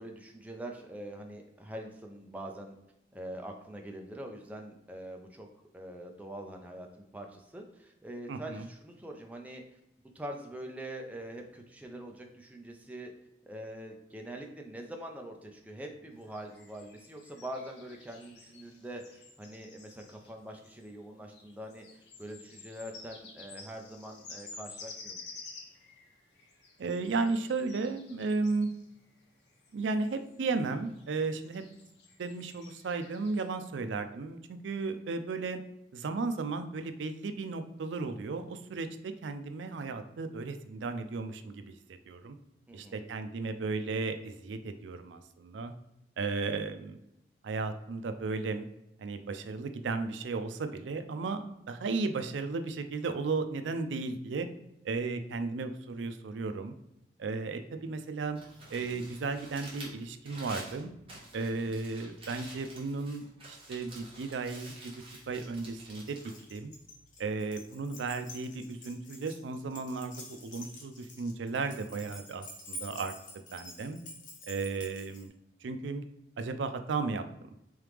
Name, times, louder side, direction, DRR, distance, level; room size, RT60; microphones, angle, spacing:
voice 1, 0.0-2.8 3.1-5.5 5.7-9.6 10.1-13.1 13.5-25.2 42.7-43.0, right 1 dB, 10° right, 2 dB, 0.4 m, -44 dB
voice 2, 8.3-8.7 26.8-28.7 29.7-31.6 32.2-35.6 35.9-42.4 42.7-45.7 46.2-47.0 47.4-48.7 49.0-54.5 54.8-56.7 57.2-58.4 58.7-60.9 61.3-66.2 66.5-66.7 67.2-73.1 73.5-74.0 74.5-75.3 75.6-76.0 76.4-77.5, right 4 dB, 90° right, 9 dB, 0.4 m, -34 dB
sound 1, 16.2-33.5, left 4 dB, 75° left, 0.9 m, -52 dB
Crumpling crinkling, 58.4-67.3, right 1 dB, 30° right, 1.2 m, -49 dB
Keys jangling, 66.1-75.3, left 1 dB, 45° left, 0.8 m, -48 dB
3.7 x 3.2 x 3.4 m, 0.84 s
head